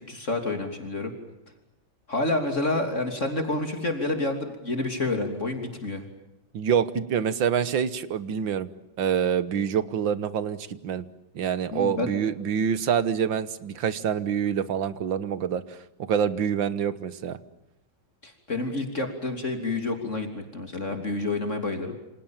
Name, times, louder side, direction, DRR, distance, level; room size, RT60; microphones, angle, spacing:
voice 1, 0.1-1.1 2.1-6.0 11.7-12.1 18.2-22.0, left 2 dB, 40° left, 5 dB, 3.5 m, -29 dB
voice 2, 6.5-8.7 9.0-11.0 11.4-15.8 16.1-17.4, right 8 dB, 75° right, 14 dB, 2.0 m, -26 dB
28.0 x 27.0 x 7.4 m, 0.88 s
omnidirectional pair, 2.1 m